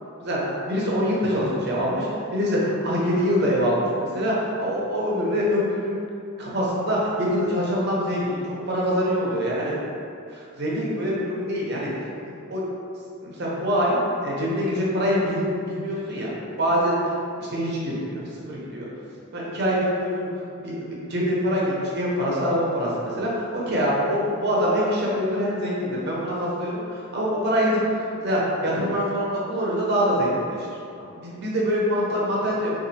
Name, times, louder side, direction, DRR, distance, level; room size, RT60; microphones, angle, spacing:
voice 1, 0.2-5.9 6.4-9.7 10.3-12.1 12.5-12.6 13.2-16.3 16.6-17.1 17.4-18.9 19.3-20.3 20.5-30.7 31.1-32.7, equal, 50° right, -5 dB, 0.7 m, -24 dB
3.9 x 2.5 x 2.7 m, 2.5 s
head